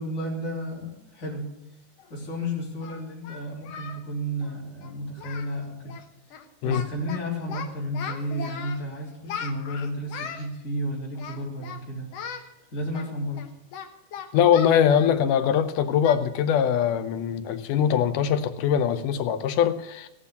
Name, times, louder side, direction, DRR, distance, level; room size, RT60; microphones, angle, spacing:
voice 1, 0.0-1.5 2.1-6.0 6.6-12.1 12.7-13.5, equal, 25° left, -4 dB, 3.5 m, -32 dB
Singing, 2.0-2.1 2.8-4.0 4.3-4.5 4.8-4.9 5.2-5.6 5.8-6.0 6.3-7.2 7.5-8.8 9.3-10.5 11.2-11.8 12.1-12.5 12.9-15.6 16.0-16.2 16.6-16.8 17.2-17.3 17.8-18.0, left 7 dB, 60° left, 1.9 m, -38 dB
voice 2, 14.3-20.1, left 8 dB, 80° left, 10 dB, 2.3 m, -22 dB
16.0 x 6.2 x 8.1 m, 0.89 s
omnidirectional pair, 3.7 m